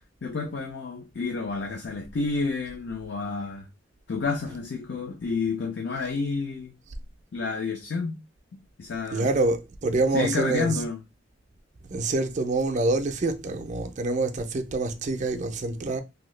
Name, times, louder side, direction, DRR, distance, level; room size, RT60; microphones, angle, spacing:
voice 1, 0.2-3.6 4.1-6.7 7.3-8.2 8.8-9.3 10.1-11.0, left 4 dB, 60° left, 0.5 m, -30 dB
voice 2, 9.1-10.8 11.9-16.0, right 2 dB, 40° right, 0.4 m, -26 dB
2.7 x 2.7 x 3.1 m
head